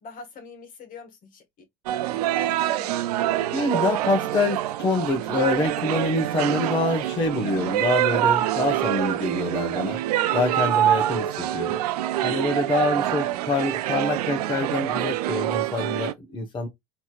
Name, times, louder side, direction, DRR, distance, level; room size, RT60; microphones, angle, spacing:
voice 1, 0.0-1.7 2.1-3.3 10.3-10.9 12.8-13.4, left 4 dB, 45° left, 1.7 m, -44 dB
sound 1, 1.9-16.1, right 13 dB, 85° right, 0.5 m, -25 dB
voice 2, 3.5-10.0 10.3-11.8 12.2-16.7, left 2 dB, 25° left, 1.2 m, -26 dB
4.1 x 3.1 x 2.5 m
supercardioid pair, 105°, 20 cm